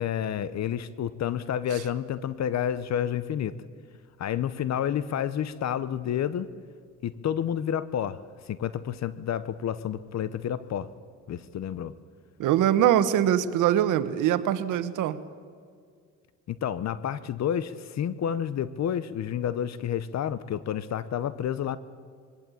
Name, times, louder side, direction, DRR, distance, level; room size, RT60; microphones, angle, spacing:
voice 1, 0.0-3.6 4.2-6.5 7.0-8.2 8.5-10.9 11.3-11.9 16.5-21.8, left 9 dB, 60° left, 16 dB, 0.9 m, -30 dB
voice 2, 12.4-15.2, right 11 dB, 85° right, 12 dB, 1.2 m, -23 dB
22.5 x 17.0 x 9.2 m, 2.1 s
cardioid pair, 90°, 30 cm